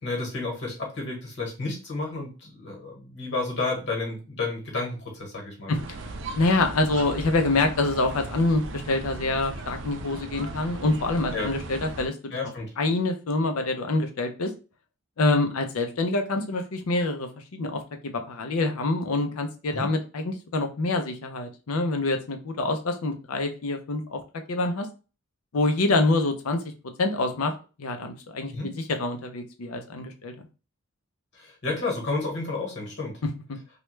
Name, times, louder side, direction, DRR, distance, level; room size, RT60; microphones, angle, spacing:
voice 1, 0.0-5.7 11.3-11.5 12.3-12.7 19.7-19.9 28.5-28.7 31.3-33.2, left 3 dB, 55° left, 0 dB, 1.2 m, -31 dB
sound 1, 5.7-12.1, right 2 dB, 55° right, 0.4 m, -37 dB
voice 2, 6.4-12.4 12.8-14.5 15.2-24.2 24.5-24.9 25.5-26.6 27.0-27.5 27.8-30.5, left 2 dB, 85° left, 6 dB, 0.5 m, -26 dB
3.1 x 2.3 x 3.2 m, 0.33 s
head